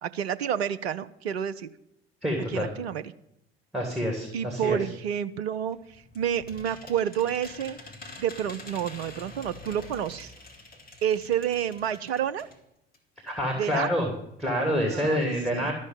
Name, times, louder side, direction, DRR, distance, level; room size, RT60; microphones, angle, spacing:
voice 1, 0.0-1.7 2.5-3.0 4.3-7.8 8.2-10.3 11.0-12.5 13.6-13.9 14.9-15.7, right 9 dB, 70° right, 12 dB, 0.7 m, -29 dB
voice 2, 2.2-2.7 3.7-4.8 13.2-14.1 14.4-15.7, equal, ahead, 2 dB, 3.1 m, -27 dB
sound 1, 5.7-12.6 12.9-13.0 13.3-13.4, left 2 dB, 25° left, 2.5 m, -46 dB
13.0 x 6.4 x 9.1 m, 0.80 s
figure-of-eight pair, 60°, 32 cm